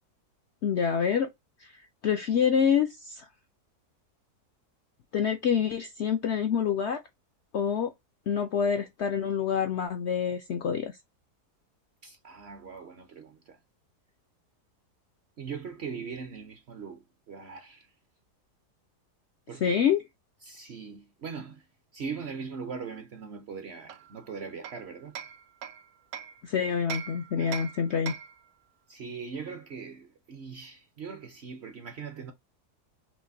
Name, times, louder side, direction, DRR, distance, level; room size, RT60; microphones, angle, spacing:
voice 1, 0.6-1.3 2.0-3.3 5.1-7.0 7.5-7.9 8.3-10.9 19.6-20.0 26.4-28.1, left 7 dB, 70° left, 0.6 m, -26 dB
voice 2, 12.0-13.6 15.4-17.9 19.5-19.8 20.4-21.7 21.9-25.2 27.4-27.9 28.9-32.3, right 5 dB, 55° right, 0.7 m, -40 dB
Hammer, 23.9-26.4 26.9-28.5, right 8 dB, 70° right, 1.0 m, -41 dB
5.7 x 2.5 x 2.6 m
omnidirectional pair, 1.7 m